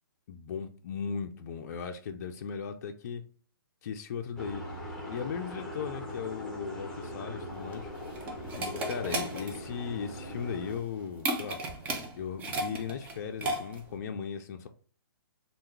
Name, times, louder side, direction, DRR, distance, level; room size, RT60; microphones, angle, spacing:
voice 1, 0.3-3.2 3.8-4.6 5.1-7.9 8.6-11.6 12.2-14.7, left 6 dB, 45° left, 0.4 m, -37 dB
sound 1, 4.4-10.8, left 1 dB, 5° left, 0.8 m, -40 dB
sound 2, 7.5-14.0, right 2 dB, 15° right, 0.4 m, -36 dB
3.4 x 2.4 x 3.1 m
hypercardioid pair, 135°, 12 cm